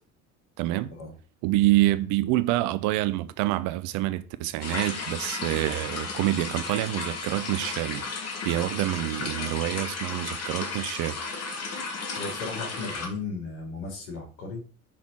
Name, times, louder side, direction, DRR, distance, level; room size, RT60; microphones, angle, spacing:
voice 1, 0.6-0.9 1.4-8.0 8.4-11.2, right 16 dB, 45° right, 0.6 m, -26 dB
sound 1, 4.6-13.1, left 4 dB, 35° left, 1.6 m, -34 dB
voice 2, 12.2-14.6, left 4 dB, 60° left, 2.8 m, -35 dB
5.9 x 4.1 x 4.4 m
figure-of-eight pair, 65°, 45 cm